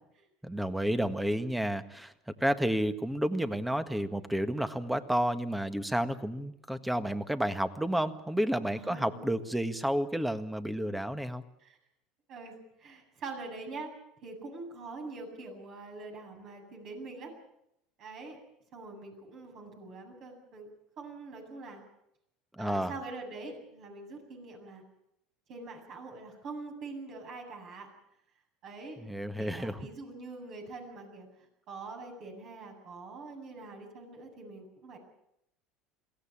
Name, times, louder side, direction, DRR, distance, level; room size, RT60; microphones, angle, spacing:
voice 1, 0.4-2.1 2.4-11.4 22.6-22.9 29.0-29.7, equal, 5° right, 10 dB, 1.7 m, -31 dB
voice 2, 8.7-9.3 11.6-11.8 12.3-13.9 14.2-17.3 18.0-18.4 18.7-20.7 21.0-21.8 22.6-24.8 25.5-27.9 28.6-29.0 29.4-35.0, right 3 dB, 50° right, 3 dB, 8.0 m, -44 dB
22.5 x 17.0 x 8.8 m, 0.81 s
hypercardioid pair, 90°, 0 cm